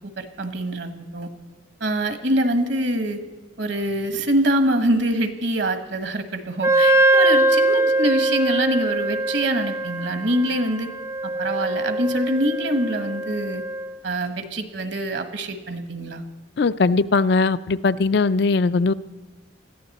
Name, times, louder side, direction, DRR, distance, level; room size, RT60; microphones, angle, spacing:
voice 1, 0.2-1.3 1.8-3.2 3.6-10.9 11.2-13.6 14.0-16.3, right 1 dB, 65° right, 9 dB, 1.3 m, -24 dB
Wind instrument woodwind instrument, 6.6-14.0, right 1 dB, 10° right, 0.4 m, -22 dB
voice 2, 16.6-18.9, left 4 dB, 55° left, 15 dB, 0.4 m, -19 dB
20.5 x 14.0 x 4.2 m, 1.2 s
head